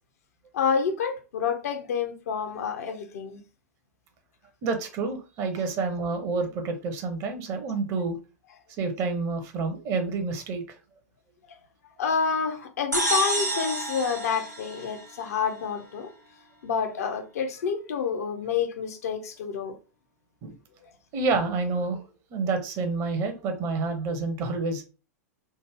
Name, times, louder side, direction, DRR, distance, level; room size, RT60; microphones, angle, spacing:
voice 1, 0.5-3.4 12.0-16.1 16.6-19.8, left 6 dB, 60° left, 0.6 m, -28 dB
voice 2, 4.6-8.2 8.8-10.6 20.4-20.5 21.1-22.0 22.3-24.8, right 4 dB, 35° right, 0.8 m, -28 dB
sound 1, 12.9-15.5, right 1 dB, 90° right, 0.9 m, -29 dB
3.3 x 2.0 x 3.3 m
figure-of-eight pair, 90°, 9 cm